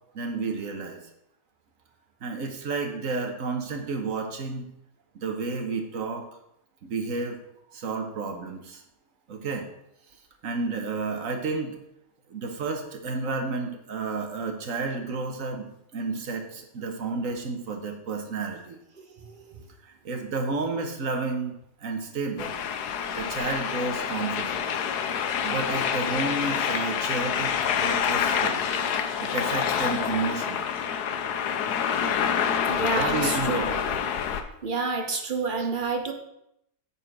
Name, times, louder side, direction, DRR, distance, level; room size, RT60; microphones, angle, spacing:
voice 1, 0.1-1.0 2.2-4.6 5.1-6.2 6.8-7.4 7.7-8.8 9.3-9.7 10.4-11.7 12.3-18.8 19.8-21.5 21.8-22.6 23.1-24.6 25.4-27.5 27.8-28.6 29.2-30.7 32.9-34.0 35.6-35.7, right 3 dB, 55° right, 4 dB, 1.4 m, -31 dB
voice 2, 19.0-19.6 32.7-33.7 34.6-36.1, right 4 dB, 40° right, 5 dB, 0.8 m, -29 dB
sound 1, 22.4-34.4, left 7 dB, 75° left, 1.2 m, -27 dB
9.0 x 4.4 x 6.0 m, 0.79 s
omnidirectional pair, 1.8 m